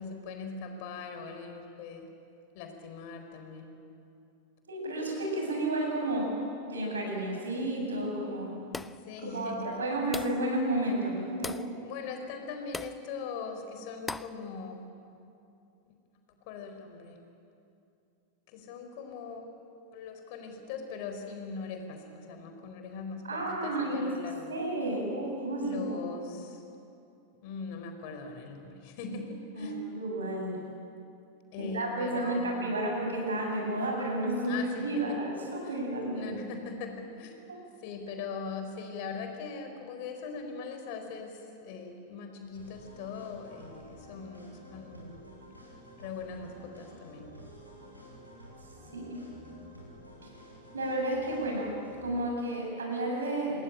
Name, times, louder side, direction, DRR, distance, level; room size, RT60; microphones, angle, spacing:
voice 1, 0.0-2.1 2.5-3.7 9.1-9.8 11.8-14.8 16.5-17.2 18.5-19.5 19.9-24.5 25.6-26.6 27.4-29.8 31.5-32.7 34.4-35.2 35.6-35.7 36.1-37.4 37.8-45.4 46.0-47.3, left 5 dB, 45° left, 5 dB, 4.4 m, -41 dB
voice 2, 4.7-6.3 6.7-8.8 9.3-11.6 23.2-24.1 24.5-26.0 26.3-26.4 29.1-29.2 29.5-30.6 31.6-36.4 37.5-37.6 48.9-49.2 50.2-50.3 50.7-51.7 52.0-53.6, right 1 dB, 70° right, 0 dB, 7.7 m, -32 dB
sound 1, 8.7-9.1 10.1-10.5 11.4-11.7 12.7-13.0 14.1-14.4, left 3 dB, 10° left, 0.6 m, -38 dB
sound 2, 42.5-52.1, left 1 dB, 85° right, 7.9 m, -51 dB
28.0 x 20.0 x 9.0 m, 2.6 s
figure-of-eight pair, 90°, 0 cm